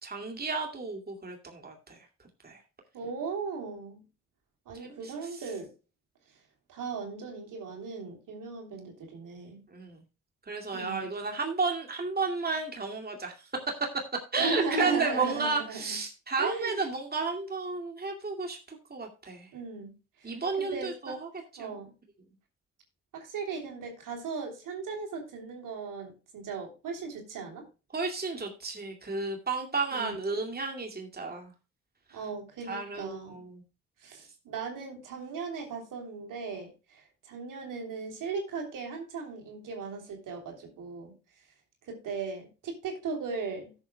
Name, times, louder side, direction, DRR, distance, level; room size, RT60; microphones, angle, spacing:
voice 1, 0.0-2.0 2.4-2.6 4.8-5.4 9.7-10.0 10.5-13.3 13.7-19.5 20.2-21.3 21.6-21.7 27.9-31.5 32.1-32.2 32.7-33.6, right 4 dB, 25° right, 2 dB, 2.4 m, -32 dB
voice 2, 2.9-4.0 4.7-5.7 6.7-9.6 10.7-11.1 14.4-16.0 16.4-16.8 19.5-21.2 21.6-21.9 23.1-27.7 29.9-30.1 32.1-33.4 34.0-41.1 41.8-43.7, right 4 dB, 65° right, 3 dB, 3.3 m, -37 dB
16.5 x 7.3 x 2.2 m, 0.31 s
hypercardioid pair, 45°, 34 cm